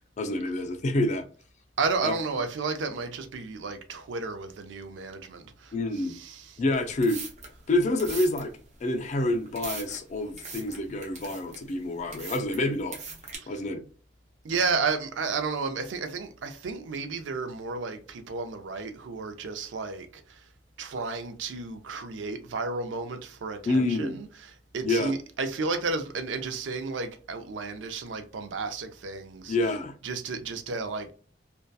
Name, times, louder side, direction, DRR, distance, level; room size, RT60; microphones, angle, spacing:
voice 1, 0.2-1.3 2.0-2.1 5.7-6.2 6.6-7.2 7.7-8.5 8.8-13.0 13.5-13.8 23.7-24.2 24.8-25.1 29.5-29.9, left 2 dB, 40° left, 0.4 m, -27 dB
voice 2, 1.8-5.7 6.1-6.6 13.4-13.5 14.4-20.4 20.8-29.6 30.0-31.1, right 4 dB, 85° right, 0.4 m, -32 dB
sound 1, 6.8-13.4, right 4 dB, 40° right, 0.6 m, -42 dB
2.6 x 2.2 x 2.2 m
head